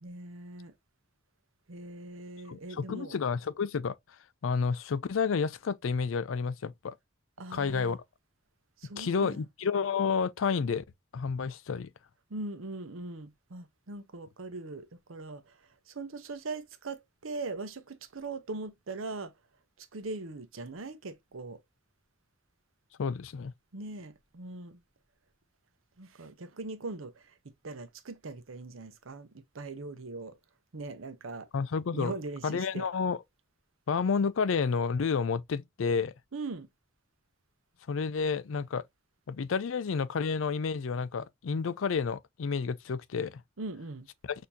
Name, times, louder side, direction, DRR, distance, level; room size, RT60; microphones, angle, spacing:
voice 1, 0.0-0.7 1.7-3.2 7.4-8.0 8.8-9.4 12.3-15.5 15.9-19.3 19.8-21.6 23.7-24.8 26.0-27.2 27.6-30.4 30.7-31.5 31.9-32.9 36.3-36.7 43.6-44.1, right 3 dB, 80° right, 0.8 m, -40 dB
voice 2, 2.5-4.0 4.4-6.9 7.5-8.0 9.0-10.8 11.1-11.9 23.0-23.5 31.5-32.1 32.4-33.2 33.9-36.1 37.9-38.8 39.3-43.4, left 5 dB, 70° left, 0.4 m, -30 dB
6.5 x 2.7 x 2.7 m
head